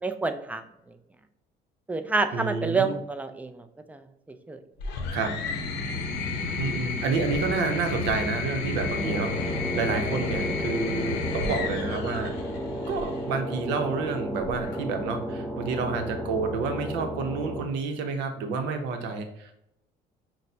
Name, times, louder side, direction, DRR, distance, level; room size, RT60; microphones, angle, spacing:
voice 1, 0.0-0.6 1.9-4.0 4.5-4.6, right 3 dB, 10° right, 8 dB, 0.4 m, -28 dB
voice 2, 2.3-2.9 5.1-5.4 6.6-12.3 12.9-19.5, right 4 dB, 85° right, 6 dB, 0.7 m, -29 dB
sound 1, 4.8-13.2 14.4-15.0, left 4 dB, 85° left, 0.7 m, -31 dB
sound 2, 8.9-17.6, equal, 10° left, 1.3 m, -33 dB
6.0 x 2.1 x 2.7 m, 0.79 s
cardioid pair, 95°, 18 cm